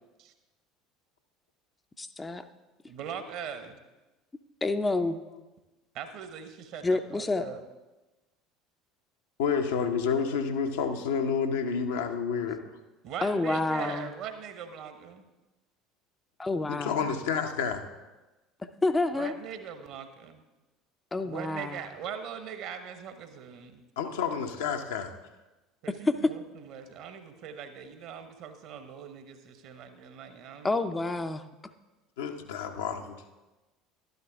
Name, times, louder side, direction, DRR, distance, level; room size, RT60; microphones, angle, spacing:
voice 1, 2.0-2.5 4.6-5.2 6.8-7.5 13.2-14.1 16.4-17.1 18.8-19.3 21.1-21.8 25.9-26.3 30.6-31.4, left 2 dB, 15° left, 8 dB, 0.5 m, -28 dB
voice 2, 2.9-3.8 5.9-7.6 13.0-15.2 19.1-20.4 21.2-23.8 25.8-30.7, right 7 dB, 50° right, 9 dB, 1.1 m, -41 dB
voice 3, 9.4-12.6 16.7-17.8 24.0-25.1 32.2-33.2, left 6 dB, 65° left, 4 dB, 0.8 m, -29 dB
12.0 x 10.5 x 3.5 m, 1.1 s
figure-of-eight pair, 65°, 0 cm